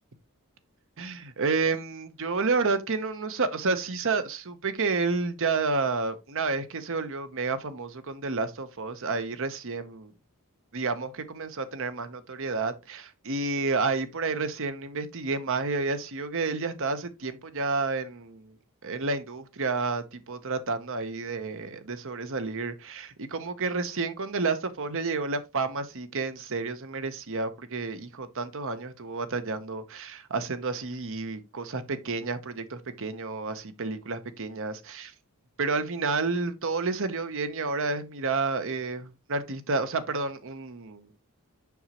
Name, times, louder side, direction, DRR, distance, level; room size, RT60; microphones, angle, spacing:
voice 1, 1.0-10.1 10.7-18.5 18.8-35.1 35.6-41.0, right 4 dB, 60° right, 1.0 m, -30 dB
7.1 x 6.2 x 3.0 m
head